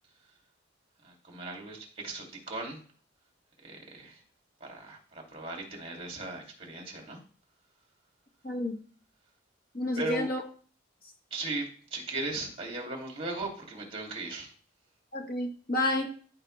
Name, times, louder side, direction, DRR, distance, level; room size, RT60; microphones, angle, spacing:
voice 1, 1.0-2.8 3.6-4.2 4.6-7.2 9.9-10.3 11.3-14.5, right 2 dB, 30° right, 0 dB, 2.6 m, -37 dB
voice 2, 8.4-8.8 9.7-10.4 15.1-16.1, left 2 dB, 45° left, 3 dB, 1.3 m, -30 dB
14.5 x 4.9 x 3.3 m, 0.42 s
head